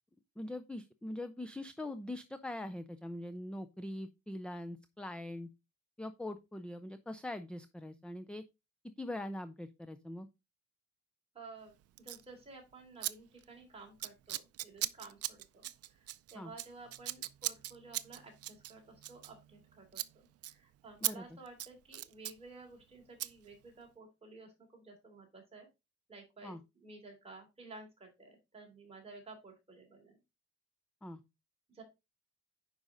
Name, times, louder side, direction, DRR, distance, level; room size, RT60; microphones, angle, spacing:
voice 1, 0.4-5.5 6.0-8.4 9.0-10.3 16.3-16.5 21.0-21.2 26.4-26.6 31.0-31.2, left 1 dB, 5° left, 11 dB, 0.3 m, -42 dB
voice 2, 11.3-25.7 26.1-30.2 31.7-31.8, right 3 dB, 20° right, 0 dB, 3.4 m, -53 dB
Scissors, 12.0-12.2 13.0-13.1 13.4-13.6 14.0-19.7 19.9-20.1 20.4-20.5 21.0-21.1 21.5-22.4 23.2-23.3, right 14 dB, 50° right, 0.5 m, -39 dB
9.6 x 5.4 x 3.8 m, 0.24 s
cardioid pair, 165°, 30 cm